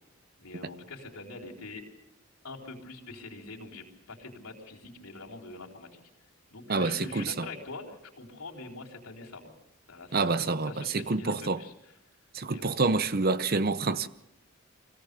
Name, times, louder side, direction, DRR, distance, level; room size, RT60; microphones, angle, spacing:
voice 1, 0.4-1.8 2.4-6.0 6.5-9.5 9.9-11.7 12.5-12.7, left 3 dB, 85° left, 4.0 m, -44 dB
voice 2, 6.7-7.5 10.1-11.6 12.3-14.1, right 3 dB, 45° right, 0.7 m, -27 dB
25.0 x 17.5 x 6.8 m
head